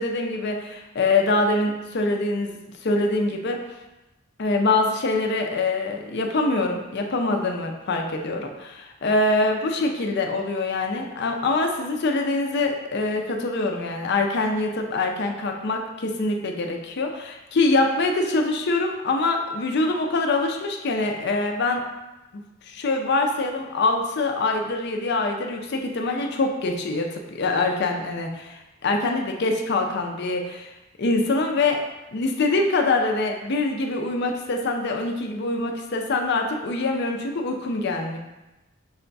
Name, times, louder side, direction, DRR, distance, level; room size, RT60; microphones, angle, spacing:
voice 1, 0.0-3.6 4.4-21.8 22.3-30.7 31.0-31.8 32.1-38.2, left 2 dB, 55° left, 3 dB, 0.5 m, -24 dB
5.5 x 2.3 x 3.9 m, 1.0 s
head